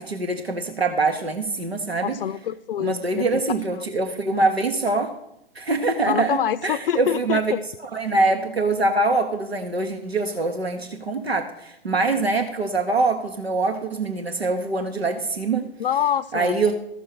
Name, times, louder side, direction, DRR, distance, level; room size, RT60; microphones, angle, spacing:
voice 1, 0.0-2.1 2.8-5.1 5.5-7.5 7.9-15.6 16.3-16.8, right 3 dB, 90° right, 5 dB, 1.1 m, -24 dB
voice 2, 2.0-3.3 3.7-3.8 6.1-7.6 15.8-16.6, left 9 dB, 65° left, 10 dB, 0.5 m, -25 dB
14.0 x 6.3 x 6.4 m, 0.80 s
figure-of-eight pair, 105°, 30 cm